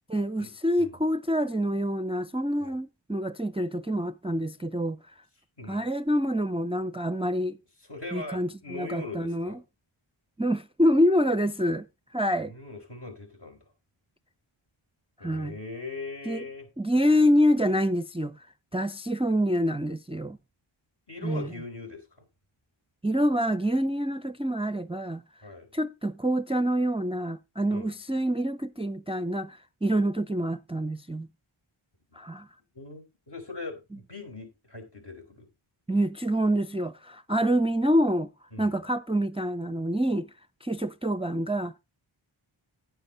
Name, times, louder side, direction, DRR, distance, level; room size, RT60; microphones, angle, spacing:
voice 1, 0.1-5.0 5.7-7.6 8.1-9.5 10.4-11.9 12.1-12.5 15.2-15.5 16.3-16.4 16.8-18.5 18.7-20.4 21.2-21.5 23.0-25.2 25.7-31.3 32.1-32.5 35.9-38.3 38.6-40.3 40.6-41.8, equal, 10° right, 0.5 m, -26 dB
voice 2, 5.6-5.9 7.9-9.6 12.4-13.6 15.2-16.7 21.1-22.2 25.4-25.7 27.7-27.9 32.1-32.2 32.7-35.5 38.5-38.8, left 3 dB, 55° left, 4.6 m, -40 dB
9.8 x 9.7 x 3.8 m
cardioid pair, 45°, 49 cm